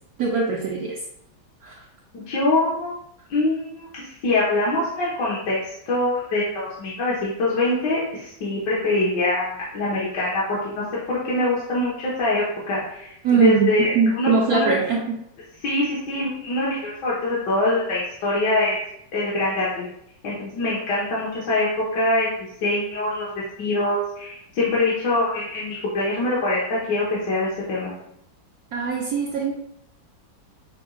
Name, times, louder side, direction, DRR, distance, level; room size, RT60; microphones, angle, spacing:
voice 1, 0.2-1.0 1.6-1.8 13.2-15.2 28.7-29.5, right 5 dB, 70° right, -2 dB, 0.9 m, -21 dB
voice 2, 2.1-2.9 3.3-3.9 4.2-5.6 5.9-14.8 15.6-18.8 19.1-19.9 20.2-27.9, left 2 dB, 65° left, -7 dB, 1.6 m, -24 dB
6.0 x 2.3 x 3.7 m, 0.74 s
omnidirectional pair, 2.1 m